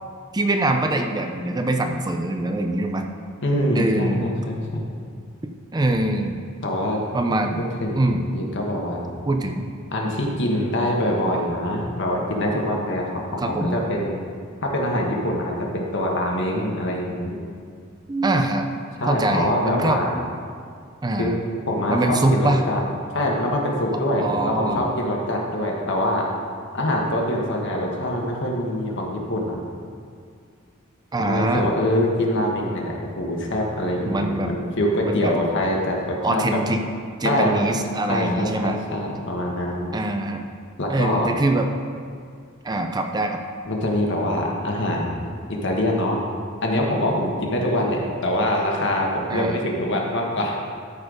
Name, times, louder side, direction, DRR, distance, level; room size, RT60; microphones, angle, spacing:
voice 1, 0.3-3.0 3.8-4.2 5.7-6.4 7.1-7.6 8.0-8.2 9.3-9.7 13.4-13.8 18.1-20.2 21.0-21.4 21.9-22.6 24.2-24.9 31.1-31.7 34.0-34.5 35.1-35.3 36.2-36.8 37.2-38.8 39.9-40.4 40.9-41.7 42.6-43.4 49.3-49.5, right 2 dB, 20° right, 4 dB, 0.5 m, -23 dB
voice 2, 3.4-4.9 6.6-7.0 7.6-9.0 9.9-14.2 14.6-17.4 19.0-20.1 21.2-21.3 21.7-22.8 23.1-26.3 26.7-29.6 31.2-36.6 37.2-37.7 38.1-40.0 40.8-41.3 43.6-45.2 45.5-46.2 46.6-50.6, left 1 dB, 60° left, -1 dB, 1.5 m, -24 dB
13.0 x 4.4 x 5.0 m, 2.2 s
head